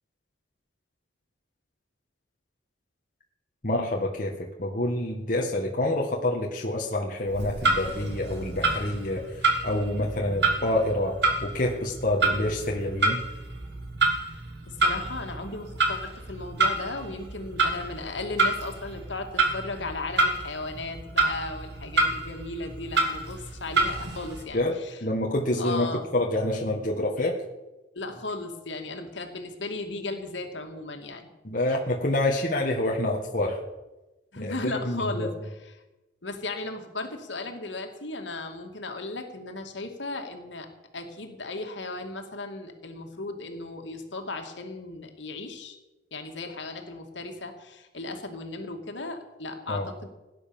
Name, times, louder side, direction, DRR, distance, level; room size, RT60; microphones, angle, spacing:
voice 1, 3.6-11.2 11.4-13.2 24.5-25.9 26.1-27.3 31.4-33.6 34.4-35.3 49.7-49.9, left 1 dB, 45° left, 0 dB, 1.6 m, -27 dB
Clock, 7.3-24.4, right 3 dB, 60° right, 2.6 m, -28 dB
voice 2, 14.7-25.0 25.6-26.1 27.9-31.3 34.3-35.7 36.2-40.7 40.9-45.8 46.1-50.1, left 2 dB, 75° left, 4 dB, 2.4 m, -36 dB
17.0 x 10.0 x 7.1 m, 1.0 s
head